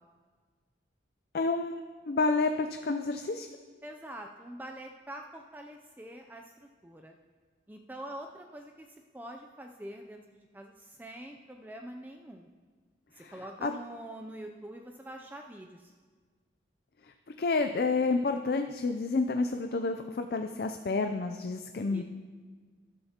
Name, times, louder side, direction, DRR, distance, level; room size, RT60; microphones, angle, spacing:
voice 1, 1.3-1.8 2.1-3.5 13.2-13.3 13.6-13.7 17.4-22.0, left 3 dB, 55° left, 6 dB, 0.4 m, -29 dB
voice 2, 3.8-6.4 6.8-7.2 7.7-8.9 9.1-10.2 10.5-12.5 13.1-15.9 21.9-22.0, right 1 dB, 10° right, 3 dB, 0.4 m, -44 dB
13.0 x 12.0 x 2.9 m, 1.5 s
head